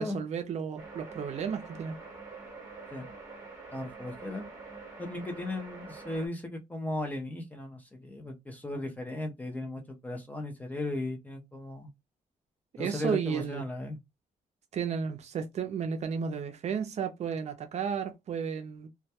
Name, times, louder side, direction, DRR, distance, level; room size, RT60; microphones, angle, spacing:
voice 1, 0.0-2.0 12.8-13.6 14.7-18.9, right 6 dB, 50° right, 0.4 m, -33 dB
sound 1, 0.8-6.3, right 4 dB, 25° right, 0.9 m, -46 dB
voice 2, 3.7-4.5 5.0-11.9 12.8-14.0, left 1 dB, 10° left, 0.4 m, -36 dB
2.2 x 2.1 x 2.8 m
wide cardioid pair, 175°, 15 cm